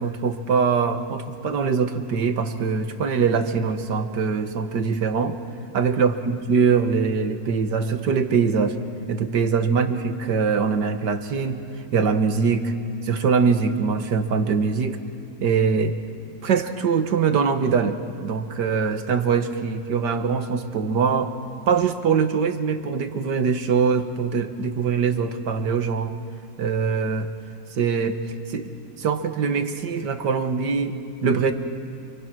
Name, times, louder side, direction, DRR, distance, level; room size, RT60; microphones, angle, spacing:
voice 1, 0.0-5.4 5.7-8.8 9.1-11.6 11.9-12.7 13.0-15.0 15.4-16.0 16.4-21.3 21.7-26.1 26.6-27.3 27.8-28.2 28.5-31.5, right 5 dB, 85° right, 8 dB, 2.0 m, -23 dB
28.5 x 26.5 x 6.2 m, 2.6 s
omnidirectional pair, 1.8 m